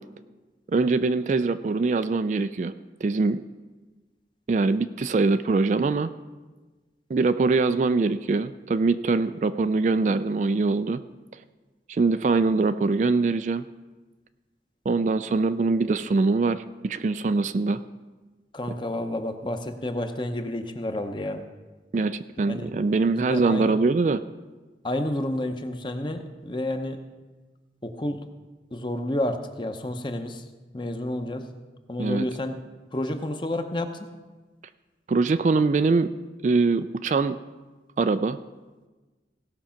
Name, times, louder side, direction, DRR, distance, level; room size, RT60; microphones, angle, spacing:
voice 1, 0.7-2.7 3.0-3.4 4.5-6.1 7.1-11.0 11.9-13.7 14.9-17.8 21.9-24.2 32.0-32.3 35.1-36.1 36.4-37.4 38.0-38.4, right 3 dB, 40° right, 12 dB, 0.3 m, -23 dB
voice 2, 18.5-21.4 22.5-22.7 23.3-23.7 24.8-27.0 27.8-28.2 28.7-30.4 30.7-31.4 31.9-32.6 32.9-33.9, left 1 dB, 25° left, 6 dB, 0.8 m, -30 dB
17.0 x 6.0 x 5.7 m, 1.3 s
head